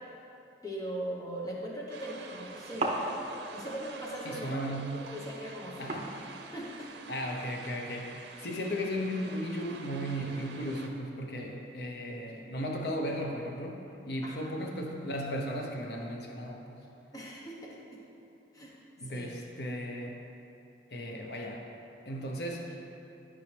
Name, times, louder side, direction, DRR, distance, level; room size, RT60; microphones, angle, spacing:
voice 1, 0.6-2.9 3.5-4.6 5.1-5.9 6.5-6.9 14.2-14.5 17.1-18.0 18.5-18.7 19.0-19.3, right 1 dB, 20° left, -4 dB, 1.1 m, -40 dB
sound 1, 1.9-10.9, right 4 dB, 70° right, 0.7 m, -48 dB
sound 2, 2.2-7.5, right 2 dB, 35° right, 1.0 m, -40 dB
voice 2, 4.2-5.1 5.8-6.1 7.1-16.8 19.0-20.2 20.9-21.6 22.1-22.8, equal, 65° left, 1 dB, 0.8 m, -36 dB
12.0 x 5.5 x 3.4 m, 2.8 s
head